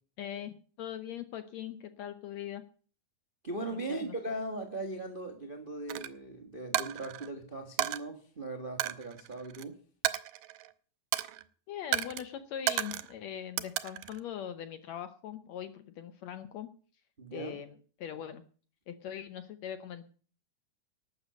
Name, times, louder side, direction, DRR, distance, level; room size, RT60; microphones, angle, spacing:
voice 1, 0.2-2.6 3.7-4.1 11.7-16.7 17.3-18.4 18.9-20.1, left 10 dB, 75° left, 11 dB, 1.7 m, -41 dB
voice 2, 3.4-9.7 17.2-17.6, right 2 dB, 35° right, 5 dB, 0.8 m, -39 dB
Coin (dropping), 5.9-6.1 6.7-7.3 7.8-8.0 8.8-9.6 10.0-10.7 11.1-11.4 11.9-12.2 12.7-13.1 13.6-14.2, right 14 dB, 85° right, 2.4 m, -33 dB
12.0 x 8.2 x 8.1 m, 0.43 s
omnidirectional pair, 3.8 m